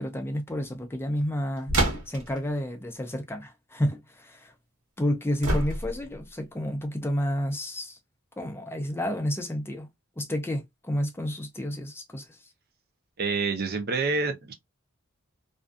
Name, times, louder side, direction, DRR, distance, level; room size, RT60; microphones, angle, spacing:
voice 1, 0.0-4.5 5.0-8.0 8.4-9.9 10.2-12.5, equal, 10° left, 0.4 m, -30 dB
sound 1, 1.7-2.4 5.4-6.1, right 1 dB, 90° right, 1.0 m, -26 dB
voice 2, 13.2-14.5, right 4 dB, 45° right, 0.5 m, -27 dB
2.5 x 2.3 x 2.3 m
head